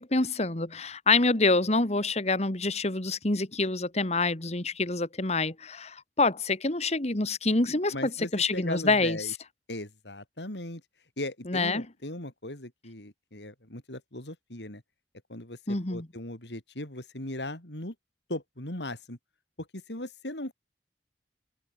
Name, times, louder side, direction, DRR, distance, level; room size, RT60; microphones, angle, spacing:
voice 1, 0.0-9.2 11.5-11.8 15.7-16.1, left 3 dB, 40° left, 1.9 m, -26 dB
voice 2, 7.9-9.3 9.7-10.8 11.2-14.8 15.3-15.6 15.9-17.9 18.3-19.2 19.7-20.5, left 1 dB, 80° left, 5.2 m, -38 dB
head